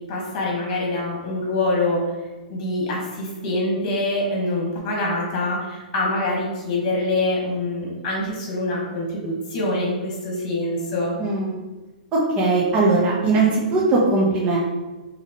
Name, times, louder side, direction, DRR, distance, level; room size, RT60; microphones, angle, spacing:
voice 1, 0.1-2.0 2.5-11.1, left 2 dB, 35° left, -3 dB, 1.3 m, -25 dB
voice 2, 11.2-11.6 12.1-14.6, right 3 dB, 30° right, -4 dB, 0.7 m, -20 dB
4.0 x 2.9 x 2.9 m, 1.2 s
hypercardioid pair, 125°, 5 cm